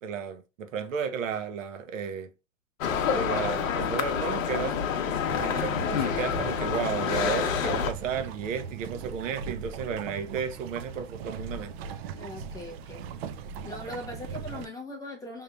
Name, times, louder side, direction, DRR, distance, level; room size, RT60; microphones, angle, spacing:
voice 1, 0.0-2.3 3.1-5.0 5.4-11.8, right 7 dB, 70° right, 0.9 m, -33 dB
sound 1, 2.8-7.9, left 7 dB, 75° left, 0.8 m, -28 dB
sound 2, 5.2-14.7, right 6 dB, 50° right, 0.5 m, -39 dB
voice 2, 12.2-13.1 13.6-15.4, left 1 dB, 10° left, 0.4 m, -40 dB
5.3 x 2.9 x 2.3 m
hypercardioid pair, 125°, 40 cm